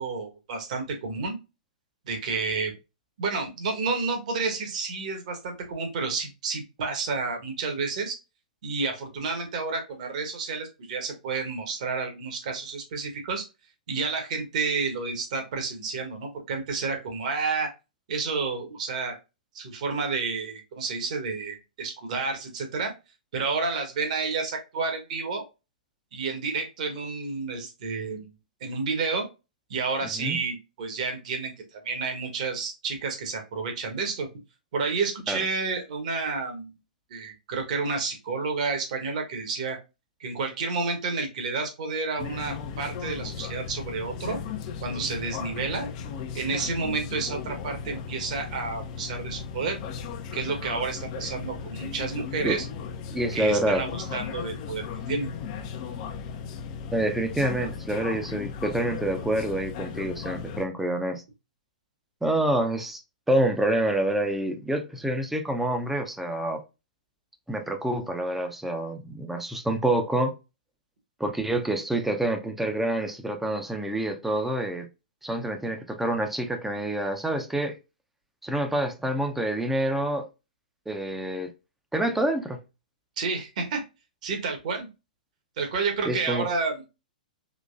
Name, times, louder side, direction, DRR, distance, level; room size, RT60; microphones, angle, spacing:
voice 1, 0.0-1.4 2.1-2.7 3.2-8.2 8.6-13.5 13.9-17.7 18.1-19.2 19.5-22.9 23.3-25.4 26.1-28.3 28.6-29.3 29.7-34.3 34.7-36.7 37.1-39.8 40.2-44.4 44.8-45.9 46.3-49.8 50.3-52.6 53.3-55.3 83.2-83.8 84.2-84.9 85.6-86.9, right 4 dB, 55° right, 1.4 m, -30 dB
sound 1, 42.2-60.7, left 6 dB, 45° left, 0.6 m, -36 dB
voice 2, 53.1-53.8 56.9-61.2 62.2-63.0 63.3-66.6 67.5-70.4 71.2-74.9 75.2-77.8 78.4-80.3 80.9-81.5 81.9-82.6 86.1-86.5, right 1 dB, 5° right, 0.6 m, -27 dB
3.8 x 3.0 x 2.4 m
hypercardioid pair, 115°, 5 cm